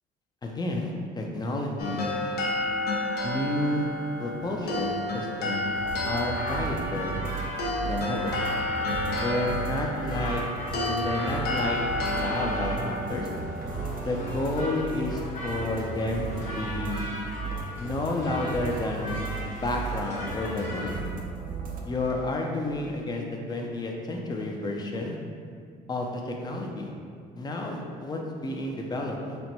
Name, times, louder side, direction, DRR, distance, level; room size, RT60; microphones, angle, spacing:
voice 1, 0.4-2.1 3.2-3.9 4.2-5.7 6.1-7.2 7.8-8.4 9.1-10.4 10.8-13.3 14.0-17.1 17.8-19.2 19.4-21.0 21.9-25.2 25.9-26.9 27.3-29.4, left 2 dB, 25° left, 1 dB, 0.5 m, -31 dB
sound 1, 1.8-15.0, left 1 dB, 70° left, 0.7 m, -32 dB
sound 2, 5.8-21.0, left 1 dB, 45° left, 1.1 m, -38 dB
sound 3, 5.8-21.8, right 4 dB, 55° right, 0.6 m, -36 dB
4.3 x 2.2 x 4.1 m, 2.1 s
cardioid pair, 110°, 17 cm